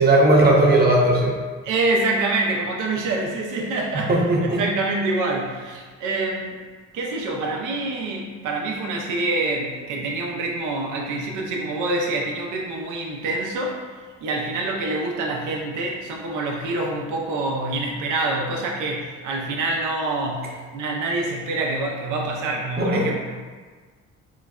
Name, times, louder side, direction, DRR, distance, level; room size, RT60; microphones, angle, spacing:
voice 1, 0.0-1.3 4.1-4.6 22.8-23.2, right 1 dB, 30° right, -2 dB, 0.7 m, -17 dB
voice 2, 1.6-6.5 6.9-13.8 14.2-23.2, right 2 dB, 85° right, -1 dB, 0.5 m, -26 dB
3.8 x 2.1 x 2.3 m, 1.4 s
cardioid pair, 90°, 30 cm